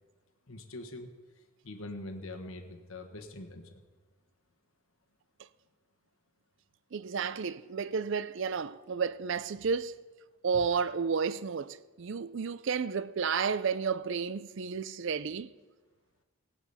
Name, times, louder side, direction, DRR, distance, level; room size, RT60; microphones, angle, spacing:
voice 1, 0.5-1.1 1.6-3.8, left 2 dB, 70° left, 1.3 m, -43 dB
voice 2, 6.9-9.9 10.4-15.5, right 5 dB, 55° right, 0.4 m, -32 dB
18.0 x 9.9 x 4.1 m
head